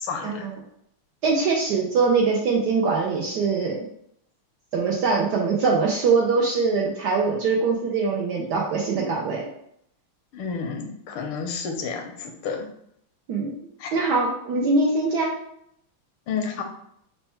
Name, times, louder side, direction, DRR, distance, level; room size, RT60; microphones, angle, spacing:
voice 1, 0.2-0.6 1.2-3.8 4.7-9.4 13.3-13.5 13.9-15.3, right 4 dB, 75° right, -1 dB, 0.9 m, -22 dB
voice 2, 10.3-12.7 13.8-13.9 16.3-16.6, left 5 dB, 80° left, 3 dB, 1.6 m, -30 dB
4.2 x 2.1 x 4.3 m, 0.71 s
omnidirectional pair, 2.4 m